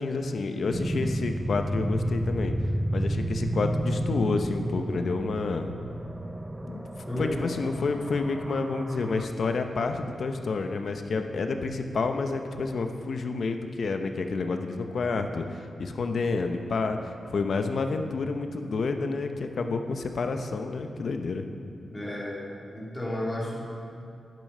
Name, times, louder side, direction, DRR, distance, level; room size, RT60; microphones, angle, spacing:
voice 1, 0.0-2.5 2.9-5.7 6.7-6.9 7.2-21.5, left 4 dB, 60° left, 6 dB, 0.8 m, -29 dB
sound 1, 0.7-9.3, right 1 dB, 15° right, 0.5 m, -31 dB
voice 2, 7.1-7.4 21.9-22.4 22.7-23.6, left 1 dB, 15° left, -5 dB, 2.9 m, -32 dB
11.0 x 10.5 x 5.5 m, 2.4 s
wide cardioid pair, 120°, 0 cm